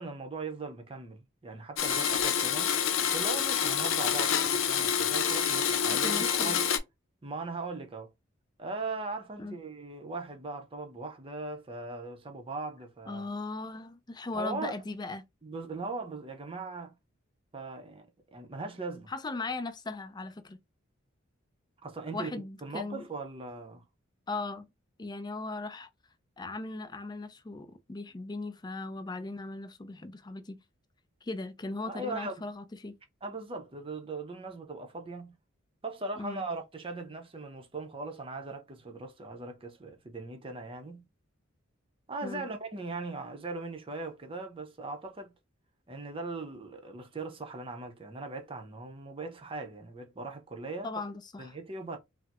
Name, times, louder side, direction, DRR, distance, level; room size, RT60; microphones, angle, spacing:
voice 1, 0.0-2.8 3.1-6.7 7.2-8.1 8.6-13.3 14.3-14.8 15.4-17.0 17.5-19.1 21.8-22.3 22.6-23.8 31.9-32.3 33.2-35.4 35.8-41.1 42.1-45.3 45.9-50.9 51.4-52.0, right 3 dB, 25° right, 0.6 m, -39 dB
Domestic sounds home sounds, 1.8-6.8, left 8 dB, 80° left, 0.5 m, -27 dB
voice 2, 6.0-6.6 9.4-9.6 13.1-15.2 19.1-20.6 22.1-23.0 24.3-24.7 25.0-25.9 26.4-30.6 31.2-33.0 36.2-36.4 42.2-42.5 50.8-51.5, left 3 dB, 20° left, 0.4 m, -38 dB
4.3 x 2.0 x 2.4 m
head